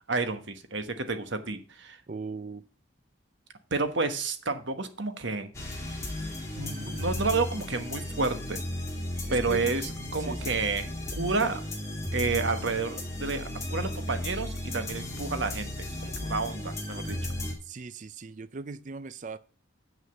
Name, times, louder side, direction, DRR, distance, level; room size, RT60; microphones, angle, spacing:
voice 1, 0.1-2.0 3.7-5.5 6.6-8.6 9.3-11.6 12.1-17.2, right 3 dB, 65° right, 1.3 m, -30 dB
voice 2, 2.1-2.6 9.3-9.6 10.2-10.5 17.7-19.4, right 4 dB, 40° right, 0.4 m, -39 dB
sound 1, 5.5-17.5, left 1 dB, 15° left, 2.4 m, -35 dB
7.5 x 6.4 x 7.0 m
head